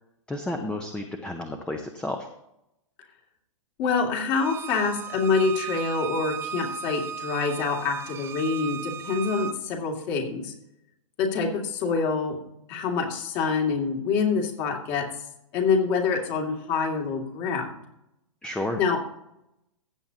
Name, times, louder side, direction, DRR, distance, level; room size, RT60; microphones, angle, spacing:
voice 1, 0.3-2.3 18.4-18.8, left 1 dB, 5° left, 5 dB, 0.8 m, -31 dB
voice 2, 3.8-10.5 11.2-12.4 12.7-15.1 15.5-17.7 18.8-19.0, left 5 dB, 40° left, 1 dB, 2.4 m, -26 dB
Bowed string instrument, 4.3-9.6, right 8 dB, 15° right, 0.4 m, -36 dB
15.5 x 8.4 x 2.9 m, 0.81 s
hypercardioid pair, 130°, 17 cm